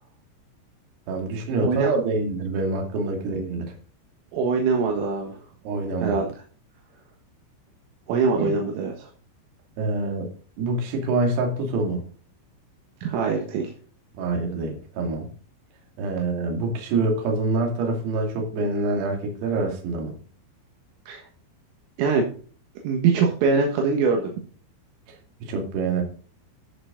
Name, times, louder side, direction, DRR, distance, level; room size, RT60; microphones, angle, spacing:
voice 1, 1.1-3.8 5.6-6.2 8.4-8.6 9.8-10.3 10.6-12.0 14.2-15.3 16.0-20.1 25.1-26.0, right 3 dB, 60° right, 2 dB, 4.2 m, -26 dB
voice 2, 4.3-5.4 6.0-6.3 8.1-9.1 13.0-13.7 21.1-21.3 22.0-22.3 22.8-24.3, right 5 dB, 75° right, 2 dB, 3.9 m, -23 dB
14.5 x 6.9 x 3.8 m, 0.41 s
omnidirectional pair, 6.0 m